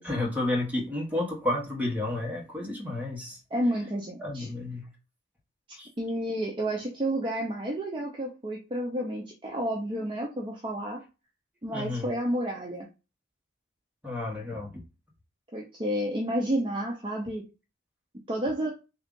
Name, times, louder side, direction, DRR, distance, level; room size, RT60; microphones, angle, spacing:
voice 1, 0.0-3.4 4.2-4.9 5.7-5.9 11.7-12.1 14.0-14.8, left 2 dB, 10° right, 1.0 m, -31 dB
voice 2, 3.5-4.5 6.0-11.0 11.6-12.9 15.5-17.4 18.3-18.7, right 1 dB, 25° right, 0.5 m, -30 dB
3.5 x 2.4 x 3.7 m
head